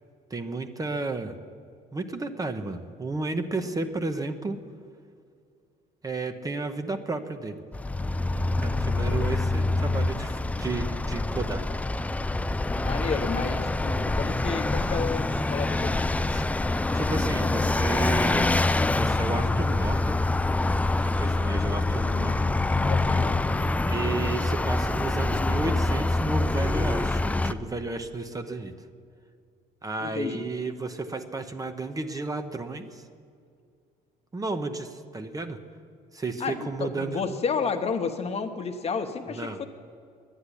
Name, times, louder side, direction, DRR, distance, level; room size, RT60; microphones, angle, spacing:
voice 1, 0.3-1.3 1.9-4.6 6.0-7.6 8.6-11.6 16.3-16.4 16.9-18.5 18.9-20.2 21.0-22.5 23.9-28.7 29.8-33.0 34.3-35.6 36.1-37.2 39.3-39.6, right 3 dB, 20° right, 8 dB, 0.8 m, -32 dB
Vehicle, 7.7-27.5, left 2 dB, 10° left, 0.4 m, -25 dB
voice 2, 12.7-16.0 22.1-22.4 22.7-23.4 24.2-24.5 30.0-30.5 36.4-39.7, left 5 dB, 40° left, 7 dB, 1.1 m, -31 dB
10.5 x 10.0 x 9.8 m, 2.3 s
cardioid pair, 110°, 17 cm